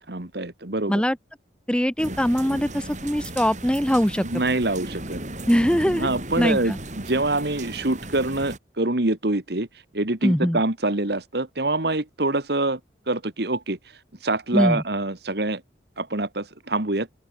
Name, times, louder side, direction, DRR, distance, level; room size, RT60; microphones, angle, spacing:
voice 1, 0.1-1.0 4.2-5.2 6.0-9.7 9.9-12.8 13.1-13.8 14.2-15.6 16.0-17.1, right 2 dB, 60° right, 1.9 m, -25 dB
voice 2, 1.7-4.2 5.5-6.1 6.4-6.8 10.2-10.6 14.5-14.8, equal, 5° left, 1.4 m, -22 dB
sound 1, 2.0-8.6, right 1 dB, 40° right, 7.0 m, -36 dB
open air
head